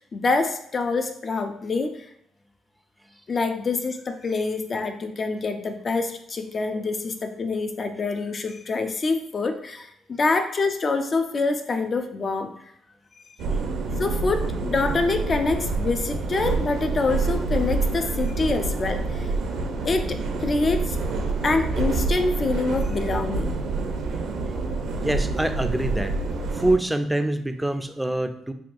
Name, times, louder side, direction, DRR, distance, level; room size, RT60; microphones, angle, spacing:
voice 1, 0.0-2.1 3.3-12.5 14.0-19.3 19.8-21.0 21.4-23.6, left 3 dB, 45° left, 7 dB, 0.5 m, -26 dB
sound 1, 13.4-26.8, right 3 dB, 75° right, 0.6 m, -27 dB
voice 2, 25.0-26.1 26.5-28.5, right 1 dB, 5° right, 8 dB, 0.4 m, -25 dB
5.8 x 2.3 x 2.5 m, 0.72 s
supercardioid pair, 60°, 0 cm